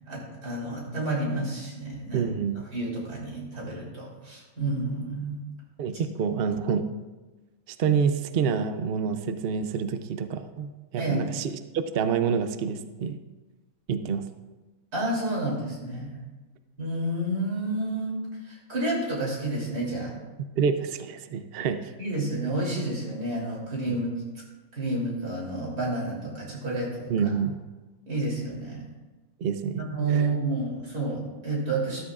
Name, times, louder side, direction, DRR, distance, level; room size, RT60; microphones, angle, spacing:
voice 1, 0.1-2.2 2.7-5.4 11.0-11.2 14.9-16.2 16.8-20.1 22.0-24.1 24.7-27.3 28.1-28.8 29.8-32.0, right 2 dB, 85° right, -4 dB, 3.8 m, -30 dB
voice 2, 2.1-2.6 5.8-6.8 7.7-13.2 13.9-14.2 20.6-21.9 23.9-24.0 27.1-27.6 29.4-29.8 30.1-30.3, right 6 dB, 60° right, 9 dB, 0.6 m, -27 dB
13.0 x 13.0 x 2.4 m, 1.2 s
omnidirectional pair, 1.6 m